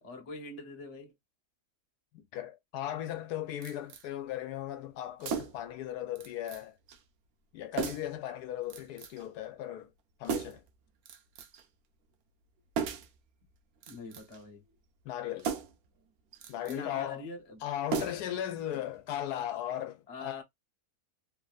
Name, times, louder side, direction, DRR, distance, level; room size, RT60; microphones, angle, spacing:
voice 1, 0.0-1.1 13.9-14.6 16.7-17.6 20.1-20.4, left 2 dB, 30° left, 0.7 m, -44 dB
voice 2, 2.3-6.7 7.5-9.9 10.2-10.6 15.0-15.5 16.5-17.2 17.6-20.4, left 11 dB, 85° left, 1.2 m, -37 dB
sound 1, 3.6-4.1 5.2-5.7 6.2-6.6 6.9-7.0 7.8-8.2 8.7-9.3 10.2-10.7 11.1-11.7 12.7-13.2 13.8-14.4 15.4-15.9 16.3-16.8 17.9-18.4 18.7-18.8, right 6 dB, 70° right, 1.0 m, -36 dB
3.2 x 2.6 x 2.3 m
omnidirectional pair, 1.7 m